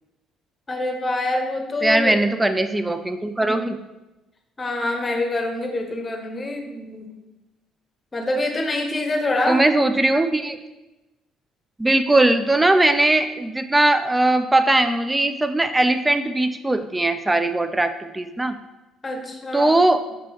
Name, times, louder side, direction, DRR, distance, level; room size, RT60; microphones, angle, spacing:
voice 1, 0.7-2.2 4.6-7.1 8.1-9.7 19.0-19.7, left 2 dB, 30° left, 3 dB, 0.8 m, -25 dB
voice 2, 1.8-3.8 9.5-10.6 11.8-18.6 19.5-20.0, right 2 dB, 15° right, 9 dB, 0.3 m, -19 dB
5.4 x 2.6 x 2.7 m, 1.0 s
supercardioid pair, 70°, 0 cm